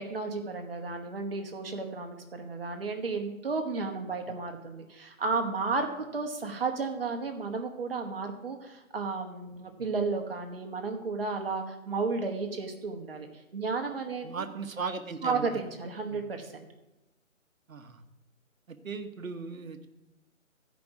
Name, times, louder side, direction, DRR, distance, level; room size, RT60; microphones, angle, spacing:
voice 1, 0.1-5.9 6.1-14.4 15.2-16.7, right 4 dB, 45° right, 4 dB, 1.3 m, -33 dB
voice 2, 14.2-15.5 16.1-16.2 17.7-18.0 18.7-19.9, right 5 dB, 75° right, 7 dB, 1.2 m, -37 dB
11.5 x 5.2 x 6.0 m, 0.97 s
figure-of-eight pair, 165°, 41 cm